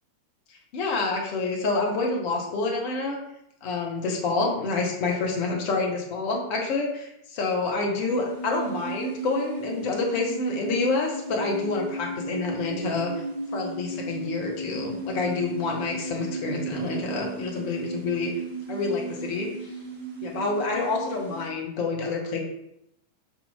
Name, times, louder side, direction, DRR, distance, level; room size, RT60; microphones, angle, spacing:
voice 1, 0.7-3.2 3.6-13.1 13.5-18.3 18.7-19.7 20.2-22.4, left 3 dB, 45° left, 0 dB, 0.8 m, -28 dB
sound 1, 8.1-21.5, right 3 dB, 50° right, 0.6 m, -35 dB
4.2 x 2.7 x 2.3 m, 0.81 s
figure-of-eight pair, 90°, 0 cm